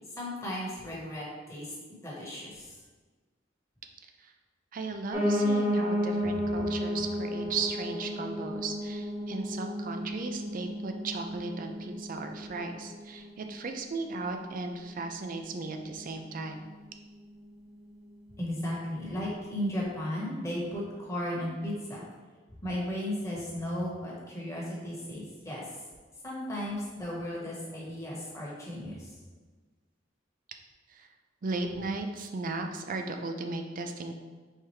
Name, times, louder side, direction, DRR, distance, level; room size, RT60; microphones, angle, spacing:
voice 1, 0.2-1.7 2.0-2.8 18.4-22.0 22.6-25.6 26.2-29.2, left 1 dB, 15° left, -5 dB, 1.2 m, -35 dB
voice 2, 4.7-16.6 30.9-31.1 31.4-34.1, right 3 dB, 45° right, 5 dB, 0.4 m, -36 dB
Piano, 5.1-14.2 14.6-15.8 16.1-16.2 16.4-16.5 16.7-16.8 17.4-17.5, equal, 15° right, 0.9 m, -32 dB
4.5 x 3.5 x 3.1 m, 1.4 s
head